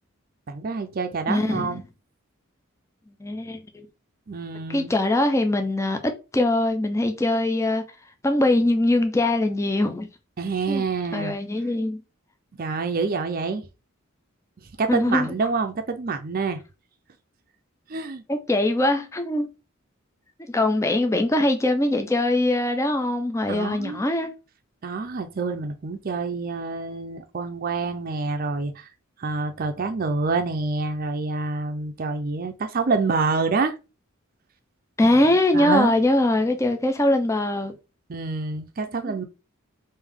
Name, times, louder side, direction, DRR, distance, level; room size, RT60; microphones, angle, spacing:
voice 1, 0.5-1.8 4.3-4.9 10.4-11.4 12.6-13.7 14.8-16.6 17.9-18.2 23.5-24.0 24.8-28.9 29.2-33.7 35.0-35.9 38.1-39.2, right 4 dB, 45° right, 0.5 m, -27 dB
voice 2, 1.3-1.8 3.2-3.9 4.7-6.0 6.3-7.8 8.2-10.1 10.7-10.8 11.1-12.0 14.9-15.3 18.3-19.5 20.5-24.3 35.0-37.7 39.1-39.2, left 1 dB, 15° left, 0.4 m, -22 dB
3.5 x 2.6 x 3.5 m
head